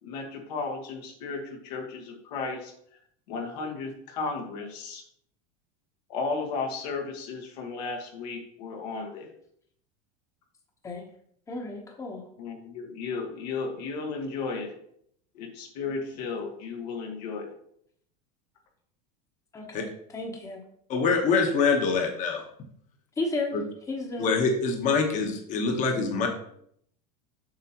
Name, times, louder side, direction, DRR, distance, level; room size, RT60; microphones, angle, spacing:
voice 1, 0.0-2.7 3.3-5.0 6.1-9.3 12.4-14.7 15.3-17.5, left 4 dB, 80° left, 2 dB, 1.7 m, -34 dB
voice 2, 11.5-12.2 19.5-20.6 23.2-23.5 23.9-24.3, left 2 dB, 15° left, 1 dB, 1.0 m, -33 dB
voice 3, 20.9-22.4 24.2-26.3, left 4 dB, 40° left, 3 dB, 1.2 m, -24 dB
7.6 x 5.8 x 3.0 m, 0.68 s
supercardioid pair, 135°, 20 cm